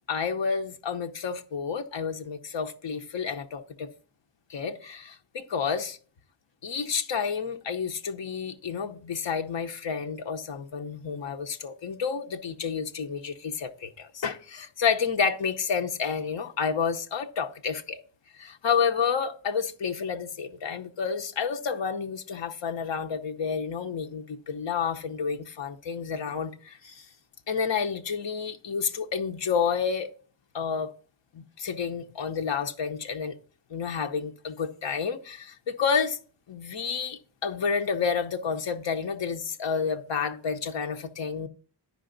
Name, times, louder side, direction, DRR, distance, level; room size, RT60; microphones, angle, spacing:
voice 1, 0.1-3.9 4.5-6.0 6.6-18.0 18.3-27.1 27.5-30.1 30.5-30.9 31.3-33.3 33.7-36.2 36.5-41.5, left 6 dB, 90° left, 0.7 m, -30 dB
10.5 x 5.1 x 3.8 m
wide cardioid pair, 90°, 43 cm